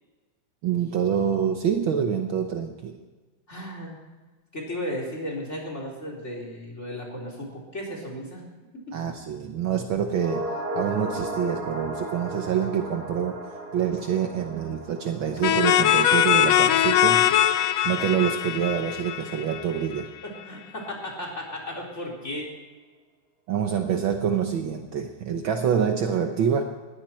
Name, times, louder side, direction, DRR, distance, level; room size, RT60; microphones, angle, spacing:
voice 1, 0.6-3.0 8.9-10.4 10.7-13.4 13.7-17.3 17.8-20.1 23.5-26.6, right 8 dB, 70° right, 5 dB, 1.1 m, -26 dB
voice 2, 3.5-4.0 4.5-8.4 8.9-9.0 20.2-22.5, left 1 dB, 20° left, -1 dB, 3.9 m, -35 dB
sound 1, 10.1-18.6 18.9-19.0, right 1 dB, 30° right, 3.5 m, -36 dB
sound 2, 15.4-20.0, left 11 dB, 75° left, 1.7 m, -21 dB
20.5 x 15.0 x 4.4 m, 1.3 s
omnidirectional pair, 3.5 m